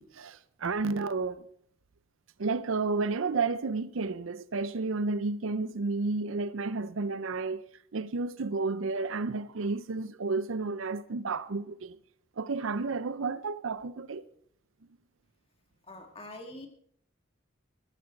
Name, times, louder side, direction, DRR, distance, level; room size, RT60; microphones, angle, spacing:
voice 1, 0.0-1.4 2.4-7.7 7.9-12.0 12.4-14.2, right 3 dB, 80° right, 0.6 m, -31 dB
voice 2, 15.9-16.7, left 1 dB, 25° left, 1.8 m, -44 dB
15.0 x 13.0 x 4.5 m
head